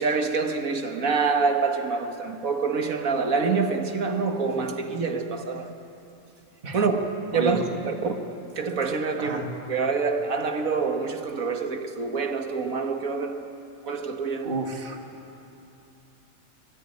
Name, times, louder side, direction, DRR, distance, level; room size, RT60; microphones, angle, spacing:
voice 1, 0.0-5.7 6.7-8.2 8.6-9.4 9.7-13.4 13.8-14.5, right 4 dB, 65° right, 5 dB, 2.1 m, -26 dB
voice 2, 14.4-15.0, right 3 dB, 35° right, 2 dB, 2.3 m, -30 dB
24.5 x 19.5 x 9.9 m, 2.8 s
omnidirectional pair, 1.6 m